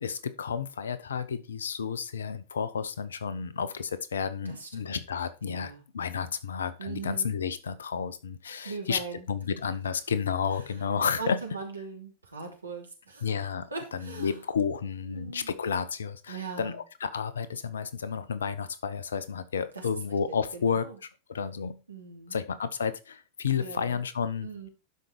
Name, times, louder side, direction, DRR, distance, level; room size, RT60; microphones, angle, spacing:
voice 1, 0.0-9.0 9.3-11.4 13.2-13.7 13.9-20.9 21.3-21.8 22.3-24.5, left 6 dB, 70° left, 1.0 m, -31 dB
voice 2, 4.4-4.9 5.4-5.8 6.8-7.3 8.6-9.2 11.2-13.3 13.7-14.4 15.0-15.5 16.3-16.8 19.7-19.8 20.3-21.0 21.9-22.4 23.6-24.0 24.4-24.7, right 4 dB, 80° right, 3.1 m, -40 dB
12.0 x 5.6 x 4.7 m
figure-of-eight pair, 90°, 0 cm